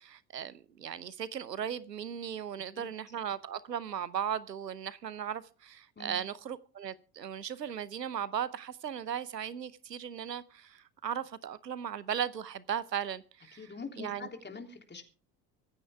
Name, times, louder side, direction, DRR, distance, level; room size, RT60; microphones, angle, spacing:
voice 1, 0.0-13.6 14.0-14.3, right 8 dB, 85° right, 0.9 m, -37 dB
voice 2, 13.5-15.0, left 4 dB, 20° left, 3.3 m, -44 dB
25.0 x 9.6 x 3.6 m
figure-of-eight pair, 60°, 48 cm